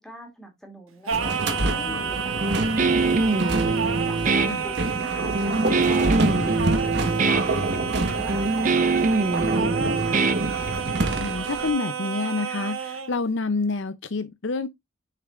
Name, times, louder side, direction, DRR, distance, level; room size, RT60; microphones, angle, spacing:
voice 1, 0.0-3.4 4.1-7.7 8.1-10.2, left 1 dB, ahead, 2.5 m, -42 dB
sound 1, 1.1-11.7, right 1 dB, 55° right, 1.3 m, -28 dB
Singing, 1.1-13.1, right 7 dB, 75° right, 1.4 m, -30 dB
Guitar, 2.4-11.1, right 3 dB, 35° right, 0.6 m, -24 dB
voice 2, 11.2-14.7, left 3 dB, 60° left, 0.6 m, -28 dB
6.7 x 6.6 x 2.4 m
head